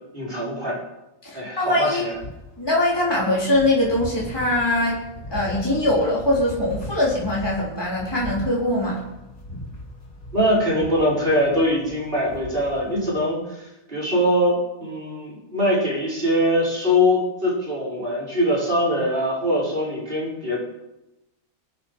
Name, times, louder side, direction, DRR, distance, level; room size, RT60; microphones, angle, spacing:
voice 1, 0.1-0.8 1.3-2.1 10.3-20.6, equal, 40° right, -6 dB, 5.8 m, -22 dB
voice 2, 1.2-2.1 2.6-5.0 5.3-9.0, left 1 dB, 15° left, -5 dB, 3.8 m, -22 dB
sound 1, 2.1-13.2, left 1 dB, 90° left, 5.1 m, -39 dB
24.5 x 8.7 x 5.6 m, 0.94 s
omnidirectional pair, 1.4 m